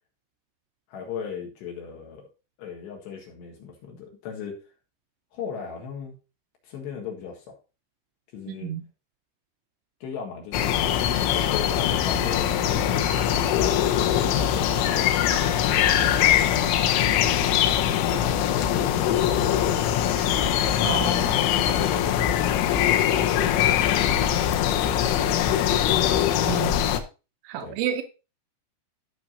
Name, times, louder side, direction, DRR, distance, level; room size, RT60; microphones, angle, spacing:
voice 1, 0.9-2.3 2.6-4.6 5.3-6.2 6.6-7.6 8.3-8.7 10.0-14.1 14.5-15.2 15.6-16.8 18.1-20.1 21.8-22.9 23.5-24.2 24.6-25.8 27.6-27.8, left 6 dB, 65° left, 3.5 m, -37 dB
voice 2, 8.5-8.8 20.8-21.4 26.5-26.9 27.4-28.0, right 9 dB, 80° right, 2.9 m, -30 dB
sound 1, 10.5-27.0, left 10 dB, 85° left, 3.3 m, -22 dB
15.0 x 5.9 x 2.7 m
omnidirectional pair, 5.7 m